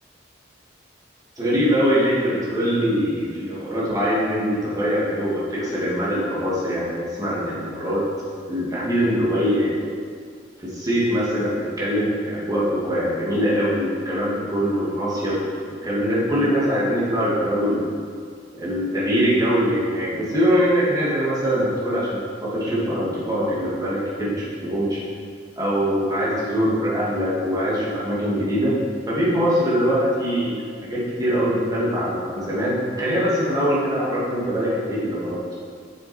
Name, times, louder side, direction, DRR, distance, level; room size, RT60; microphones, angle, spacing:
voice 1, 1.4-8.0 8.5-9.8 10.6-15.4 15.8-17.9 18.6-25.0 25.6-28.7 29.1-30.6 30.8-35.4, equal, 20° right, -8 dB, 2.6 m, -22 dB
8.5 x 7.0 x 4.6 m, 2.1 s
head